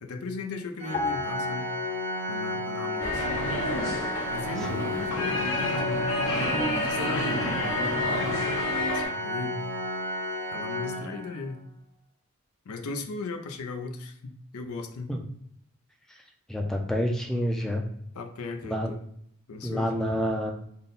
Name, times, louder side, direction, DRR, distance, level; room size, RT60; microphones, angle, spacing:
voice 1, 0.0-1.7 2.3-3.3 4.3-6.0 6.3-9.6 10.5-11.6 12.7-15.1 18.1-19.0 19.5-20.0, left 3 dB, 85° left, 5 dB, 0.5 m, -37 dB
Organ, 0.8-11.6, left 1 dB, 55° right, 0.6 m, -32 dB
sound 1, 0.9-2.6 2.8-3.1, left 4 dB, 35° left, 0.8 m, -35 dB
sound 2, 3.0-9.1, left 1 dB, 70° left, 0.9 m, -29 dB
voice 2, 16.5-17.8 18.6-18.9 19.6-20.5, equal, ahead, 2 dB, 0.4 m, -28 dB
3.7 x 2.2 x 3.8 m, 0.72 s
head